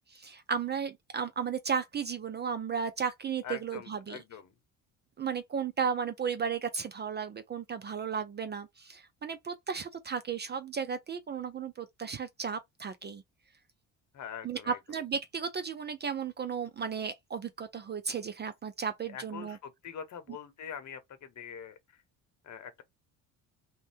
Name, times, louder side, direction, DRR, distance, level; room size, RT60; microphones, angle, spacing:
voice 1, 0.1-4.2 5.2-13.2 14.4-19.6, right 6 dB, 30° right, 0.4 m, -34 dB
voice 2, 3.4-4.5 14.1-14.8 19.1-21.8 22.4-22.8, left 8 dB, 50° left, 0.9 m, -43 dB
2.6 x 2.2 x 3.4 m
supercardioid pair, 70°, 38 cm